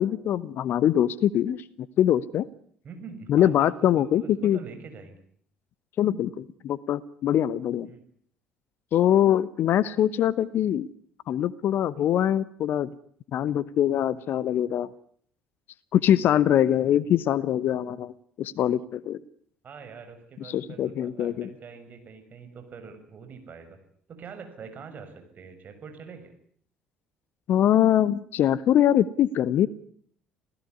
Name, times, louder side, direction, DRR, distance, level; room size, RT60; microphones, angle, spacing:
voice 1, 0.0-2.5 3.3-4.6 6.0-7.9 8.9-10.9 11.3-12.9 13.3-14.9 15.9-19.2 20.4-21.5 27.5-29.7, left 11 dB, 50° left, 20 dB, 1.0 m, -23 dB
voice 2, 2.8-5.2 7.8-8.0 19.6-23.8 24.1-26.3, right 5 dB, 40° right, 7 dB, 6.5 m, -44 dB
27.0 x 16.5 x 9.7 m, 0.62 s
figure-of-eight pair, 55°, 5 cm